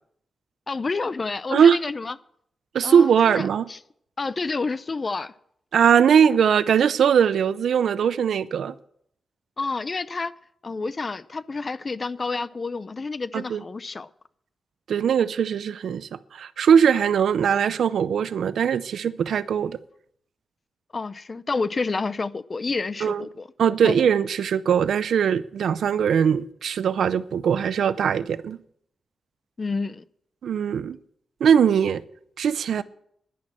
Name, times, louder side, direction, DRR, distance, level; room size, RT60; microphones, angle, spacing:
voice 1, 0.7-2.2 2.8-3.8 4.2-5.3 9.6-10.3 10.6-14.1 20.9-23.5 23.8-24.0 29.6-30.0, left 3 dB, 35° left, 0.5 m, -29 dB
voice 2, 2.7-3.7 5.7-8.7 13.3-13.6 14.9-19.8 23.0-23.2 23.6-28.6 30.4-31.0 31.4-32.0 32.4-32.8, right 7 dB, 85° right, 0.5 m, -20 dB
11.0 x 10.5 x 7.5 m
wide cardioid pair, 115°, 0 cm